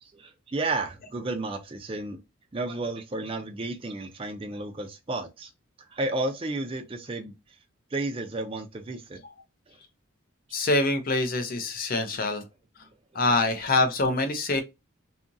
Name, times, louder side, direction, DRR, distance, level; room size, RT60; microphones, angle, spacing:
voice 1, 0.0-2.2 2.5-5.5 5.9-7.3 7.9-9.2, right 2 dB, 25° right, 0.4 m, -32 dB
voice 2, 10.5-12.4 13.1-14.6, left 2 dB, 40° left, 0.5 m, -25 dB
2.7 x 2.5 x 2.6 m
head